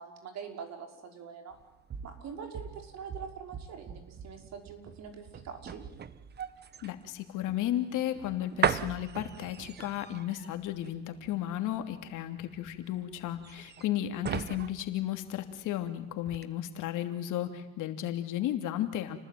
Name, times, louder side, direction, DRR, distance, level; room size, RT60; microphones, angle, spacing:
voice 1, 0.0-1.6 2.0-5.8, right 6 dB, 45° right, 5 dB, 5.4 m, -44 dB
sound 1, 1.5-15.9 16.2-16.5, right 7 dB, 30° right, 1.2 m, -38 dB
voice 2, 6.8-19.2, left 12 dB, 55° left, 7 dB, 2.9 m, -34 dB
29.5 x 19.5 x 9.3 m, 1.0 s
supercardioid pair, 115°, 36 cm